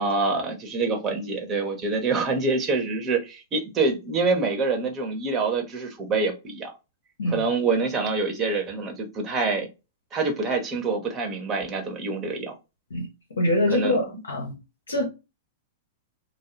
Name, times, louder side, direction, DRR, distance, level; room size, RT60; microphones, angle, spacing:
voice 1, 0.0-6.7 7.3-9.7 10.1-12.5 13.7-14.0, right 3 dB, 30° right, 0.9 m, -26 dB
voice 2, 13.4-14.6 14.9-15.1, left 1 dB, 85° left, 0.7 m, -24 dB
2.3 x 2.0 x 3.0 m
hypercardioid pair, 105°, 0 cm